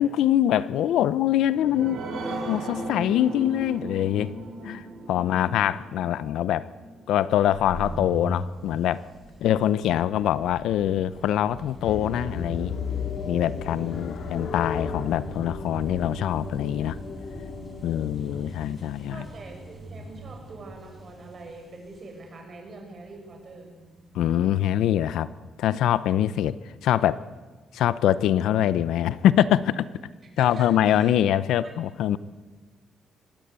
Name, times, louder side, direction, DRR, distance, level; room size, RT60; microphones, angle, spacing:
voice 1, 0.0-2.0 2.5-4.3 4.6-6.7 7.1-9.0 9.4-12.7 13.3-17.0 17.8-19.2 24.1-25.3 25.6-26.6 26.8-27.2 27.7-29.9 30.4-32.2, left 11 dB, 80° left, 16 dB, 0.8 m, -24 dB
sound 1, 1.2-8.2 8.7-8.8 9.1-9.2, right 2 dB, 70° right, 7.6 m, -37 dB
sound 2, 7.3-24.7, equal, 5° right, 5.7 m, -42 dB
sound 3, 11.8-18.1, left 5 dB, 55° left, 2.8 m, -34 dB
voice 2, 13.5-14.0 18.7-18.8 19.1-23.7 30.3-31.1 31.6-31.7, right 3 dB, 35° right, 2 dB, 7.0 m, -44 dB
25.0 x 20.0 x 8.4 m, 1.3 s
cardioid pair, 160°, 0 cm